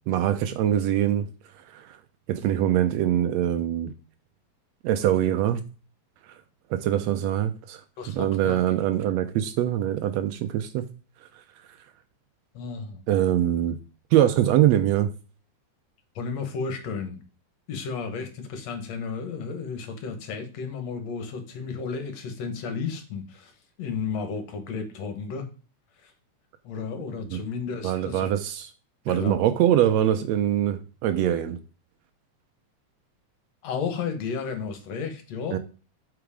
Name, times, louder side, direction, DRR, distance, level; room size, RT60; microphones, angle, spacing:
voice 1, 0.1-1.3 1.7-2.0 2.3-3.9 4.8-5.6 6.7-7.8 8.1-10.9 13.1-13.8 14.1-15.1 27.3-27.4 27.8-28.7 29.1-31.6 35.5-35.6, right 11 dB, 75° right, 1.7 m, -23 dB
voice 2, 8.0-8.6 12.5-13.0 16.2-17.2 17.7-23.5 23.8-25.5 26.0-26.1 26.6-28.3 29.1-29.4 33.6-35.6, left 5 dB, 65° left, 2.3 m, -33 dB
8.0 x 4.9 x 4.9 m
omnidirectional pair, 3.3 m